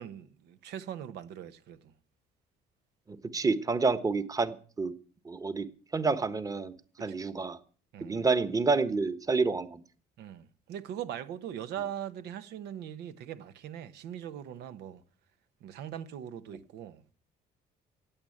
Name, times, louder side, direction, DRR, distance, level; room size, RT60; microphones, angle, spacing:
voice 1, 0.0-1.9 7.1-7.4 7.9-8.3 10.2-15.0 15.6-17.1, right 10 dB, 80° right, 1.1 m, -41 dB
voice 2, 3.1-4.9 5.2-5.7 5.9-6.7 7.0-7.6 8.0-9.8, right 4 dB, 20° right, 1.3 m, -28 dB
16.0 x 9.0 x 8.7 m
cardioid pair, 110°, 17 cm